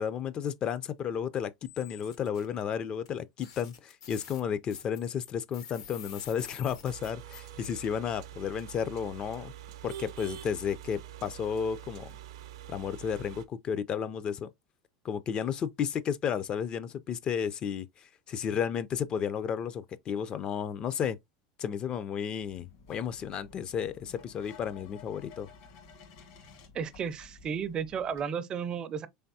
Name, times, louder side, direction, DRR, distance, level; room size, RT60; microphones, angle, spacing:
voice 1, 0.0-9.5 9.8-12.1 12.7-14.5 15.0-21.2 21.6-25.5, left 8 dB, 35° left, 0.4 m, -33 dB
sound 1, 1.7-2.4 3.0-3.1 3.4-7.7, left 7 dB, 85° left, 1.1 m, -48 dB
sound 2, 6.9-13.4, right 11 dB, 85° right, 0.6 m, -45 dB
sound 3, 22.4-28.2, left 5 dB, 65° left, 1.4 m, -53 dB
voice 2, 26.7-29.1, right 7 dB, 30° right, 0.4 m, -33 dB
3.9 x 3.4 x 2.6 m
supercardioid pair, 125°, 3 cm